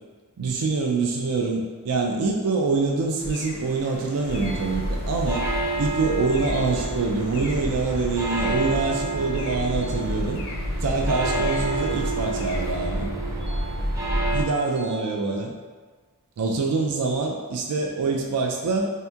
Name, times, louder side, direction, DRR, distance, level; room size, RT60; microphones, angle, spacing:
voice 1, 0.4-5.4 5.8-10.4 10.8-13.1 14.3-15.5 16.4-18.9, right 3 dB, 85° right, 0 dB, 0.4 m, -25 dB
sound 1, 3.2-12.7, left 2 dB, 60° left, 0.5 m, -41 dB
sound 2, 4.3-14.4, right 1 dB, 15° right, 0.4 m, -28 dB
sound 3, 4.3-5.3 6.5-7.5 9.6-10.6 11.5-12.6 13.4-14.3 14.7-15.7, right 3 dB, 55° right, 0.9 m, -44 dB
4.2 x 2.7 x 2.3 m, 1.4 s
head